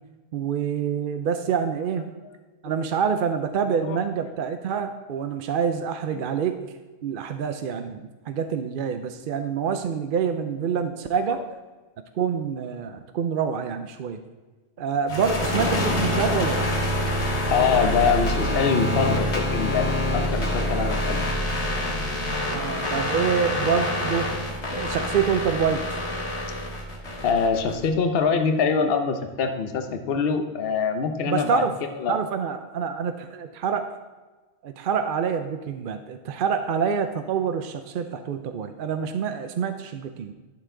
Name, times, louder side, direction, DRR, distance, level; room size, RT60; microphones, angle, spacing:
voice 1, 0.3-2.1 2.6-6.6 7.0-11.4 12.2-14.2 14.8-16.7 22.5-24.3 24.7-26.0 31.3-31.7 32.1-33.9 34.6-40.3, right 7 dB, 60° right, 8 dB, 0.7 m, -26 dB
voice 2, 3.7-4.0 6.1-6.2 15.3-15.4 16.2-16.4 17.5-19.9 20.1-21.2 27.2-31.7 32.0-32.1, left 5 dB, 60° left, 6 dB, 1.0 m, -24 dB
sound 1, 15.1-27.9, left 1 dB, 80° left, 1.9 m, -26 dB
11.5 x 6.8 x 3.7 m, 1.3 s
omnidirectional pair, 1.2 m